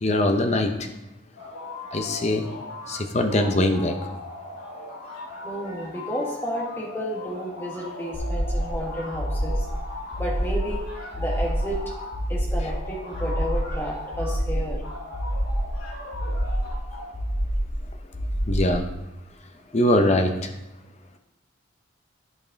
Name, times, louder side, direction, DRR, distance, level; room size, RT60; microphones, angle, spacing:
voice 1, 0.0-0.7 1.9-2.5 2.9-3.9 18.5-18.9 19.7-20.5, left 1 dB, 30° left, 5 dB, 0.7 m, -22 dB
sound 1, 1.4-3.0 3.3-12.2 12.6-14.4 14.8-17.1, left 2 dB, 80° left, 2.7 m, -39 dB
voice 2, 5.4-9.7 10.2-11.8 12.3-14.8, equal, 10° left, -3 dB, 1.6 m, -32 dB
sound 2, 8.1-8.8 9.1-9.8 10.1-10.8 11.1-11.8 12.1-12.8 13.1-13.8 14.1-14.8 15.1-15.8 16.1-16.8 17.1-17.8 18.1-18.8, equal, 60° left, 3.1 m, -27 dB
11.0 x 5.4 x 4.0 m, 0.91 s
head